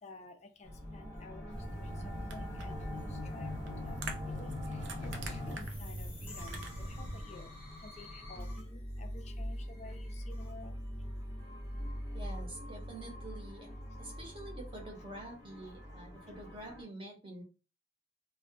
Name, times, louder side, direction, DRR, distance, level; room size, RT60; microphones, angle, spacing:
voice 1, 0.0-11.3 13.9-14.0 16.2-16.3, left 3 dB, 40° left, 0.4 m, -53 dB
sound 1, 0.6-16.8, left 1 dB, 10° left, 0.7 m, -43 dB
sound 2, 1.5-7.2, right 1 dB, 85° right, 0.4 m, -42 dB
voice 2, 12.1-13.7 14.0-17.4, right 1 dB, 30° right, 0.7 m, -47 dB
2.1 x 2.0 x 3.0 m
head